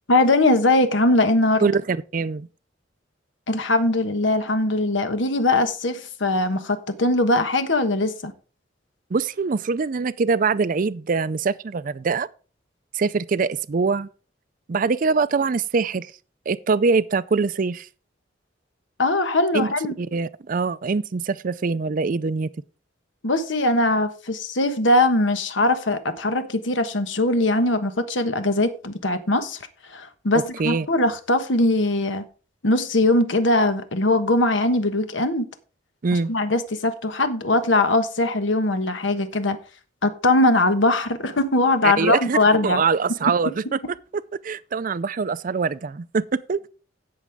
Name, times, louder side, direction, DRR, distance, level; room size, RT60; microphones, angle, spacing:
voice 1, 0.1-1.7 3.5-8.3 19.0-20.0 23.2-29.6 29.9-32.2 32.6-35.5 36.1-39.6 40.0-42.8 43.3-43.4, left 2 dB, 90° left, 1.3 m, -21 dB
voice 2, 1.6-2.5 9.1-12.3 12.9-14.1 14.7-16.1 16.5-17.9 19.5-19.7 20.0-22.5 30.6-30.9 36.0-36.3 41.8-42.4 42.6-43.8 44.4-46.6, right 4 dB, 45° right, 0.4 m, -23 dB
16.5 x 6.3 x 3.6 m
head